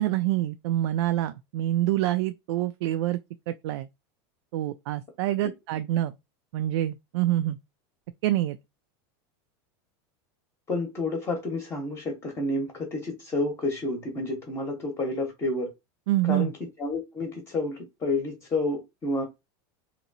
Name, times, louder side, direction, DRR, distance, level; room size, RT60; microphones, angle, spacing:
voice 1, 0.0-3.2 3.5-3.9 4.5-6.1 6.5-7.6 8.2-8.6 16.1-16.5, right 14 dB, 80° right, 0.4 m, -26 dB
voice 2, 10.7-15.7 16.3-16.5 16.8-19.3, left 2 dB, 20° left, 0.8 m, -30 dB
2.9 x 2.7 x 4.0 m
supercardioid pair, 165°, 14 cm